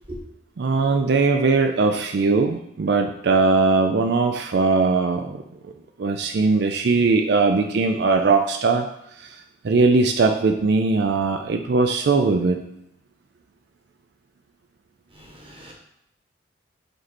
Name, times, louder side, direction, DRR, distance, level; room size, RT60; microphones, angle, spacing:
voice 1, 0.6-5.4 6.0-8.9 9.2-9.4 9.6-12.6, right 3 dB, 60° right, 0.4 m, -20 dB
voice 2, 15.1-15.7, right 1 dB, 30° right, 1.3 m, -40 dB
5.2 x 4.5 x 4.2 m
head